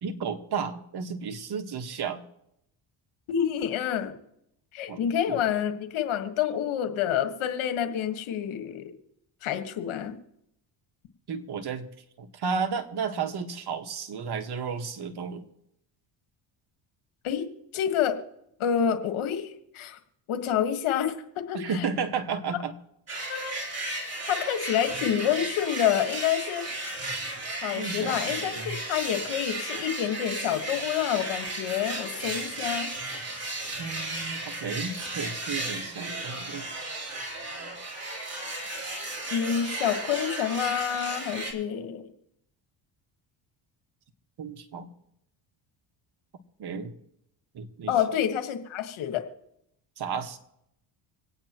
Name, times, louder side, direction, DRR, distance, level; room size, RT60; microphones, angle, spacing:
voice 1, 0.0-2.2 4.9-5.4 11.3-11.9 12.2-15.5 21.5-22.8 23.1-23.4 27.8-28.8 33.8-36.7 44.4-44.9 46.6-46.9 47.5-47.9 50.0-50.4, right 5 dB, 50° right, 6 dB, 1.5 m, -33 dB
voice 2, 3.3-4.1 4.7-8.9 9.4-10.1 17.2-17.5 17.7-18.1 18.6-20.0 20.3-21.9 23.3-23.5 24.3-26.6 27.6-32.9 39.3-42.0 47.9-49.2, left 9 dB, 75° left, 7 dB, 1.6 m, -28 dB
sound 1, 23.1-41.5, right 2 dB, 30° right, 3.7 m, -34 dB
26.0 x 9.0 x 3.0 m, 0.80 s
cardioid pair, 90°, 49 cm